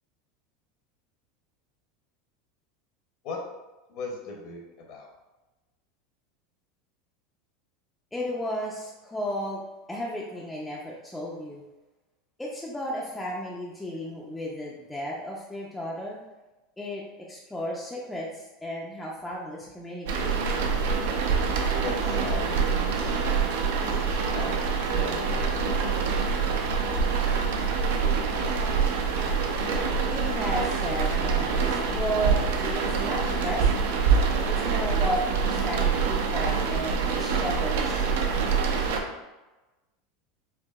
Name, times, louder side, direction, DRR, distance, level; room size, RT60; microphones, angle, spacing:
voice 1, 3.9-5.1 21.8-23.3 23.8-24.6 24.9-25.9, left 3 dB, 45° left, 0 dB, 0.6 m, -38 dB
voice 2, 8.1-9.6 9.9-11.6 12.4-16.2 16.8-20.4 30.1-33.9 34.5-38.1, equal, 5° left, -4 dB, 0.3 m, -34 dB
sound 1, 20.1-39.0, right 5 dB, 75° right, 0.5 m, -25 dB
4.4 x 2.7 x 2.3 m, 1.1 s
supercardioid pair, 165°, 0 cm